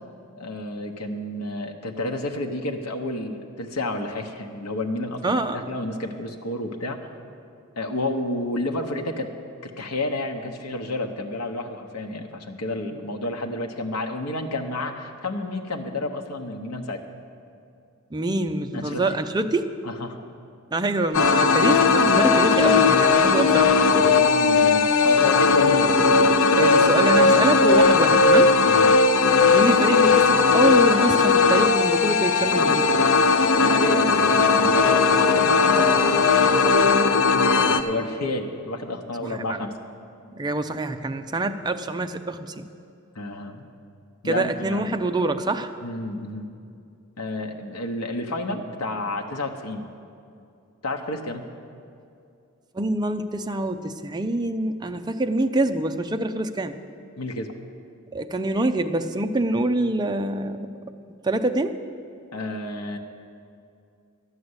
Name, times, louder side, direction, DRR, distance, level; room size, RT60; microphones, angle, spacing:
voice 1, 0.4-5.2 5.5-7.0 7.8-9.3 9.6-17.0 18.7-19.0 19.8-20.2 24.0-25.9 28.6-28.9 33.4-39.7 43.1-43.6 44.2-45.0 45.8-46.5 47.2-49.9 50.8-51.5 57.2-57.5 62.3-63.0, left 2 dB, 85° left, 3 dB, 0.9 m, -30 dB
voice 2, 5.2-5.7 18.1-19.7 20.7-23.7 26.5-28.5 29.5-32.9 39.2-39.6 40.3-42.7 44.2-45.7 52.7-56.8 58.1-60.7 61.2-61.8, right 2 dB, 20° right, 7 dB, 0.5 m, -25 dB
sound 1, 21.1-37.8, left 4 dB, 65° left, 0.6 m, -18 dB
12.5 x 6.5 x 9.6 m, 2.5 s
head